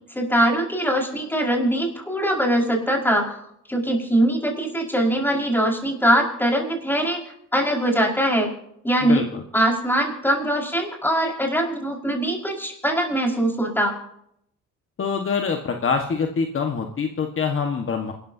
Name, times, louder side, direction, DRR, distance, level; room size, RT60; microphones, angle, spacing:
voice 1, 0.1-3.4 3.7-7.2 7.5-8.5 8.8-9.2 9.5-13.9, right 1 dB, 5° left, -1 dB, 5.1 m, -22 dB
voice 2, 9.0-9.4 15.0-18.1, left 5 dB, 45° left, 3 dB, 1.5 m, -25 dB
28.0 x 13.5 x 2.8 m, 0.73 s
cardioid pair, 90°, 30 cm